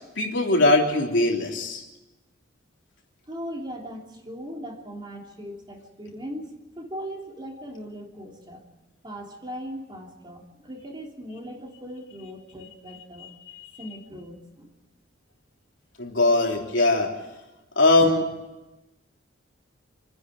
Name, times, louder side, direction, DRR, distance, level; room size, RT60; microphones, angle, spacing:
voice 1, 0.2-1.8 13.6-13.7 16.0-17.1 17.7-18.2, left 2 dB, 65° left, 0 dB, 3.4 m, -20 dB
voice 2, 3.3-8.6 9.0-13.3 13.8-14.7 18.0-18.2, equal, 25° right, 0 dB, 3.3 m, -39 dB
28.0 x 10.5 x 9.2 m, 1.1 s
head